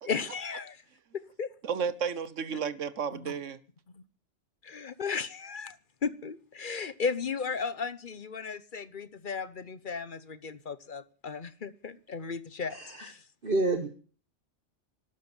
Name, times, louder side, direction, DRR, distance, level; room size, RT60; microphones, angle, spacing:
voice 1, 0.0-0.8 1.1-1.5 3.2-3.3 3.9-4.0 4.6-5.8 6.0-13.2, left 5 dB, 45° left, 1.0 m, -35 dB
voice 2, 1.6-3.6, right 6 dB, 80° right, 1.5 m, -32 dB
voice 3, 12.7-13.1 13.4-13.9, right 2 dB, 45° right, 1.5 m, -29 dB
12.5 x 12.0 x 9.7 m
omnidirectional pair, 1.3 m